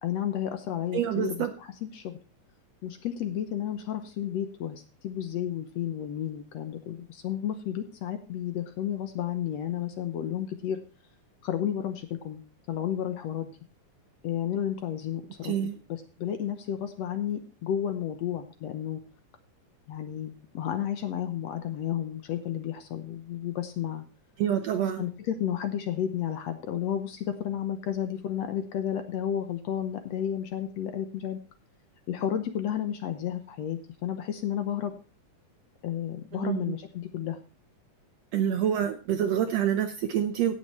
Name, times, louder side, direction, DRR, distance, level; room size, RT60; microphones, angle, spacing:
voice 1, 0.0-1.5 1.8-2.2 2.8-10.8 11.4-12.4 12.7-13.5 14.2-15.5 15.9-19.0 19.9-24.0 25.0-31.4 32.1-34.9 35.8-37.4, left 10 dB, 70° left, 8 dB, 1.8 m, -32 dB
voice 2, 0.9-1.5 15.4-15.8 24.4-25.1 36.3-36.7 38.3-40.5, right 9 dB, 75° right, 8 dB, 1.6 m, -27 dB
16.5 x 6.7 x 4.2 m, 0.32 s
omnidirectional pair, 3.7 m